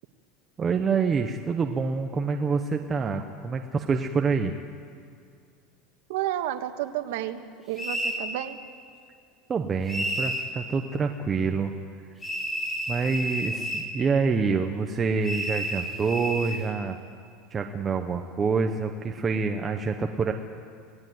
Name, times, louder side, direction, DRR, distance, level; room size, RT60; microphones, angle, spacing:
voice 1, 0.6-4.5 9.5-11.7 12.9-17.0 17.5-20.3, right 5 dB, 15° right, 5 dB, 0.9 m, -26 dB
voice 2, 6.1-8.6, right 12 dB, 70° right, 8 dB, 1.6 m, -31 dB
sound 1, 7.8-8.2 9.9-10.5 12.2-13.9 15.2-16.6, equal, 5° left, 2.8 m, -31 dB
27.0 x 18.5 x 9.4 m, 2.3 s
supercardioid pair, 180°, 0 cm